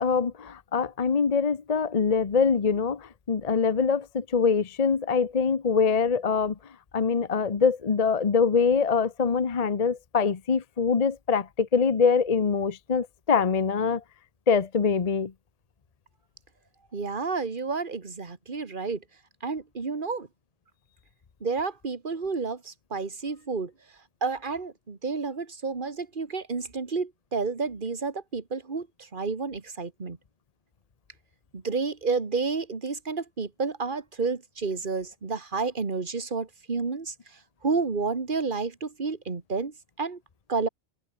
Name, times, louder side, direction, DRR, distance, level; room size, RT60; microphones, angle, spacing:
voice 1, 0.0-6.6 6.9-14.0 14.5-15.3, left 5 dB, 35° left, 0.9 m, -24 dB
voice 2, 16.9-19.0 19.4-20.3 21.4-23.7 24.2-28.9 29.1-30.2 31.5-37.1 37.6-40.2 40.5-40.7, right 4 dB, 45° right, 2.0 m, -30 dB
omnidirectional pair, 1.2 m